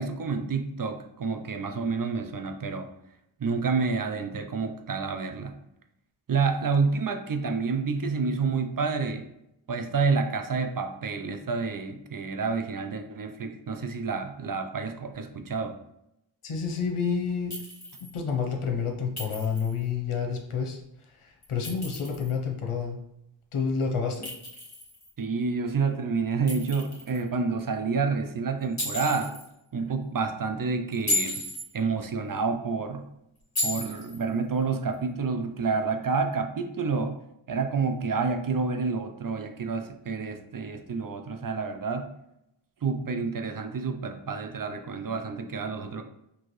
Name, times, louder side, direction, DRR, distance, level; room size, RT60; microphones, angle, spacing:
voice 1, 0.0-2.9 3.4-5.6 6.3-9.3 9.7-15.8 25.2-29.4 29.7-31.4 31.7-33.0 33.6-37.2 37.5-42.1 42.8-46.0, right 4 dB, 45° right, 7 dB, 0.5 m, -29 dB
voice 2, 16.4-17.6 18.0-23.0 23.5-24.3, left 6 dB, 80° left, 2 dB, 0.9 m, -29 dB
Chink clink, 17.5-18.1 19.2-19.8 21.4-22.3 24.2-25.1 26.5-27.2 28.8-29.5 30.9-31.7 33.6-34.2, left 2 dB, 35° left, 1.6 m, -33 dB
4.4 x 2.9 x 3.1 m, 0.81 s
wide cardioid pair, 60°, 49 cm